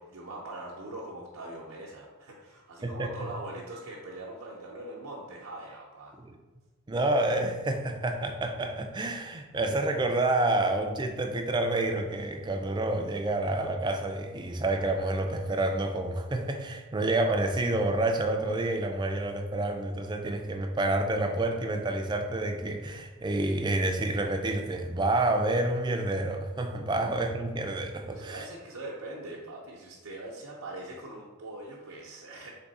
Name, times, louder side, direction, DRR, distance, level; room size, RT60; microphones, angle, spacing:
voice 1, 0.0-6.1 28.1-32.5, right 2 dB, 85° right, -3 dB, 0.7 m, -42 dB
voice 2, 6.9-28.5, right 2 dB, 20° right, 4 dB, 0.3 m, -28 dB
3.6 x 3.5 x 4.0 m, 1.3 s
head